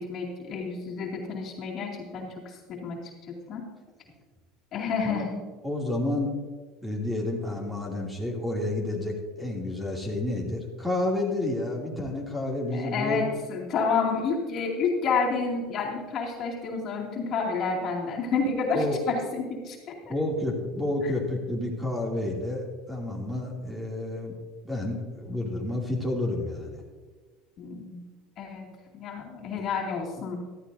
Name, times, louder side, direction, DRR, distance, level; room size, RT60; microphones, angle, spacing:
voice 1, 0.0-3.6 4.7-5.4 12.7-20.1 27.6-28.0 28.4-30.4, left 4 dB, 45° left, -2 dB, 2.5 m, -30 dB
voice 2, 5.6-6.3 6.8-13.2 18.7-19.0 20.1-24.3 24.6-26.8 29.6-29.7, left 2 dB, 5° right, -1 dB, 2.7 m, -30 dB
14.0 x 13.0 x 2.7 m, 1.4 s
supercardioid pair, 120°, 0 cm